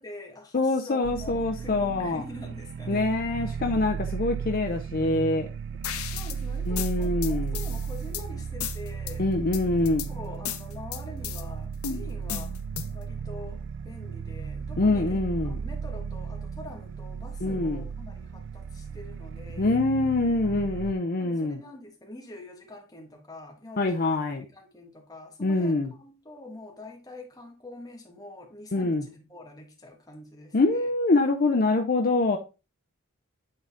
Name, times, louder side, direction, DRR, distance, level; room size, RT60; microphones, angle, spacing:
voice 1, 0.0-3.1 5.9-9.3 10.1-12.6 12.9-19.8 21.2-24.2 24.5-30.9, left 2 dB, 15° left, 1.5 m, -45 dB
voice 2, 0.5-2.2 2.9-5.5 6.7-7.6 9.2-10.1 14.8-15.6 17.4-17.8 19.6-21.6 23.8-24.4 25.4-25.9 28.7-29.0 30.5-32.4, left 2 dB, 45° left, 0.5 m, -25 dB
sound 1, 1.0-20.9, right 6 dB, 55° right, 0.3 m, -35 dB
sound 2, 5.8-6.4 6.8-8.2 8.6-9.1 9.5-10.1 10.4-11.4 11.8-13.0, left 9 dB, 90° left, 0.7 m, -35 dB
8.8 x 3.8 x 3.5 m
head